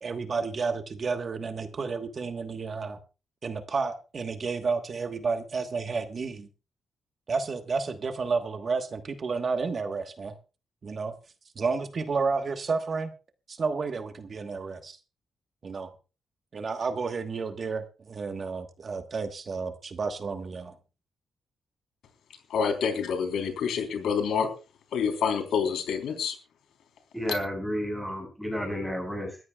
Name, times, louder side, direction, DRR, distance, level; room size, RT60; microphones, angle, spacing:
voice 1, 0.0-3.0 3.4-6.5 7.3-10.3 10.8-11.1 11.5-13.1 13.5-15.0 15.6-15.9 16.5-20.8, right 4 dB, 40° right, 7 dB, 1.3 m, -31 dB
voice 2, 22.5-24.5 24.9-26.4, left 6 dB, 80° left, 6 dB, 3.6 m, -27 dB
voice 3, 27.1-29.4, equal, ahead, 2 dB, 6.7 m, -31 dB
22.5 x 14.0 x 2.3 m, 0.32 s
cardioid pair, 130°, 0 cm